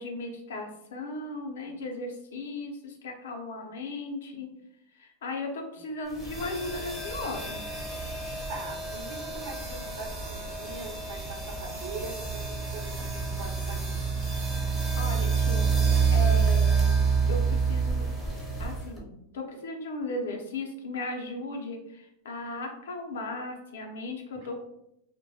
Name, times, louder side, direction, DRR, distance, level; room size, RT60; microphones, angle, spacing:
voice 1, 0.0-4.5 5.0-7.6 14.5-15.7 16.1-16.9 17.3-18.0 18.6-24.6, left 2 dB, 90° left, 2 dB, 0.6 m, -36 dB
sound 1, 6.1-19.0, right 5 dB, 10° right, 0.6 m, -28 dB
voice 2, 8.5-13.9, right 4 dB, 70° right, 0 dB, 0.7 m, -42 dB
2.2 x 2.1 x 2.7 m, 0.79 s
supercardioid pair, 135°, 0 cm